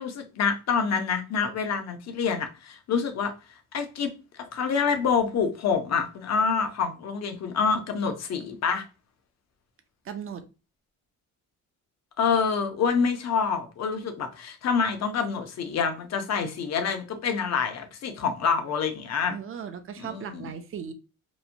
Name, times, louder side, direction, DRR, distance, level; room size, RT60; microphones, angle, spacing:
voice 1, 0.0-3.3 3.7-4.1 4.5-8.8 12.2-19.4 20.0-20.5, left 6 dB, 55° left, 0.6 m, -27 dB
voice 2, 10.0-10.4 19.3-20.9, right 8 dB, 40° right, 0.4 m, -37 dB
2.9 x 2.1 x 2.5 m
cardioid pair, 115°, 33 cm